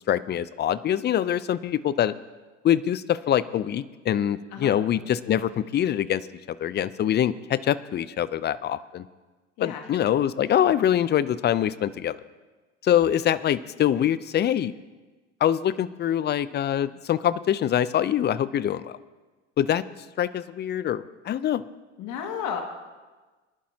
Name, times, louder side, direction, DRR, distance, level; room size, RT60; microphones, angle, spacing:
voice 1, 0.1-2.1 2.6-6.2 6.6-9.0 9.6-12.2 12.8-14.7 15.4-19.0 19.6-19.8 20.2-21.6, left 10 dB, 30° left, 17 dB, 0.6 m, -24 dB
voice 2, 22.0-22.6, left 8 dB, 55° left, 3 dB, 2.1 m, -32 dB
23.0 x 11.5 x 2.9 m, 1.3 s
hypercardioid pair, 80°, 37 cm